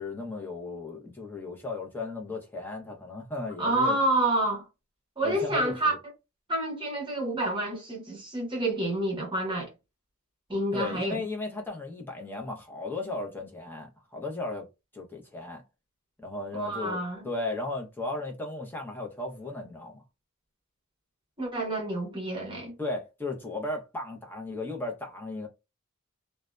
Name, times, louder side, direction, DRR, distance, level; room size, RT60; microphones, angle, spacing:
voice 1, 0.0-4.0 5.2-6.0 10.7-14.7 14.9-15.6 16.2-20.0 22.8-25.5, left 2 dB, 10° left, 0.7 m, -35 dB
voice 2, 3.6-4.6 5.2-6.0 6.5-9.7 10.5-11.2 16.5-17.3 21.4-22.7, right 1 dB, 20° right, 0.9 m, -28 dB
2.6 x 2.1 x 2.2 m
head